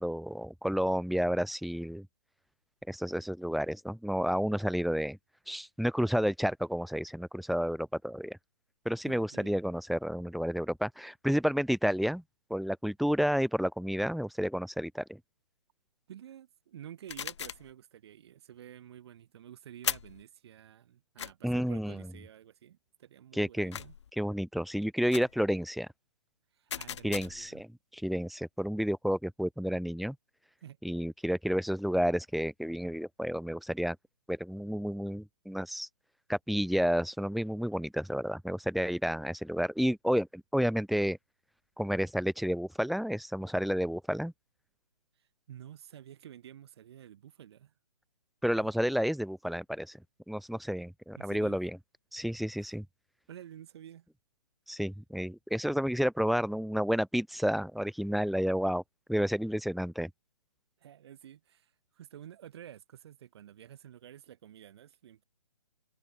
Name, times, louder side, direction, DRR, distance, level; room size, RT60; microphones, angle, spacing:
voice 1, 0.0-2.1 2.9-5.2 5.5-8.4 8.8-12.2 12.5-15.2 21.4-22.0 23.3-23.8 24.2-25.9 27.0-27.7 27.9-30.1 30.8-34.0 34.3-35.9 36.3-41.2 41.8-44.3 48.4-50.0 50.3-51.8 52.1-52.8 54.7-58.8 59.1-60.1, equal, ahead, 1.4 m, -31 dB
voice 2, 9.0-9.6 16.1-23.9 26.5-27.6 30.6-30.8 45.2-47.7 48.6-48.7 51.2-51.6 52.6-52.7 53.3-54.1 60.8-65.2, right 10 dB, 40° right, 4.6 m, -50 dB
sound 1, 17.1-17.7 19.8-20.2 21.2-21.3 23.7-24.1 25.1-25.4 26.7-27.5, left 8 dB, 45° left, 0.8 m, -37 dB
figure-of-eight pair, 140°, 20 cm